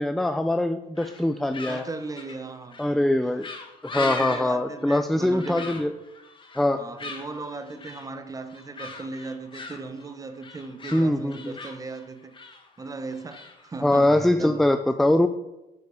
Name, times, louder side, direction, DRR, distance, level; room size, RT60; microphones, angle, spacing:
voice 1, 0.0-1.8 2.8-3.5 3.8-5.9 6.6-6.8 10.9-11.6 13.8-15.3, left 1 dB, ahead, 0.3 m, -22 dB
sound 1, 1.0-14.3, left 3 dB, 30° left, 1.5 m, -40 dB
voice 2, 1.6-2.8 4.0-5.7 6.8-12.3 12.8-14.6, right 3 dB, 20° right, 0.8 m, -37 dB
8.0 x 5.2 x 7.1 m
cardioid pair, 110°, 17 cm